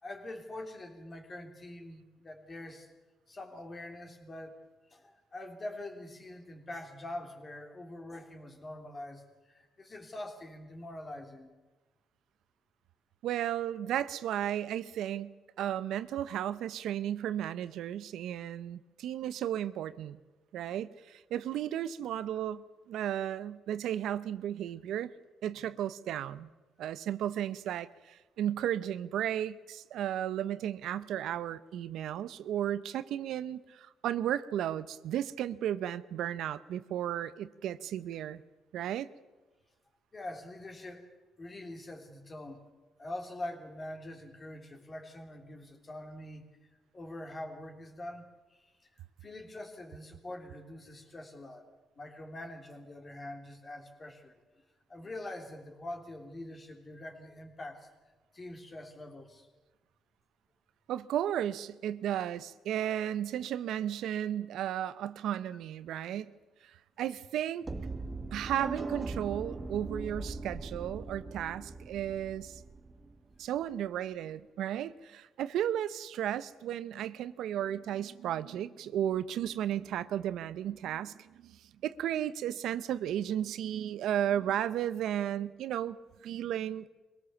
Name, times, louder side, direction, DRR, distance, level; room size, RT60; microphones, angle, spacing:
voice 1, 0.0-2.9 3.3-4.6 4.9-11.5 25.5-25.6 40.1-41.1 41.4-42.6 43.0-46.5 46.9-48.9 49.2-51.7 51.9-54.3 54.9-57.9 58.3-59.5, left 1 dB, 30° left, 3 dB, 3.4 m, -44 dB
voice 2, 13.2-20.2 20.5-25.1 25.4-26.5 26.8-38.4 38.7-39.1 60.9-66.3 67.0-67.7 68.3-72.6 73.4-86.9, right 11 dB, 80° right, 15 dB, 0.7 m, -34 dB
sound 1, 67.6-73.6, right 3 dB, 25° right, 1.3 m, -40 dB
22.5 x 17.5 x 7.2 m, 1.2 s
cardioid pair, 90°, 0 cm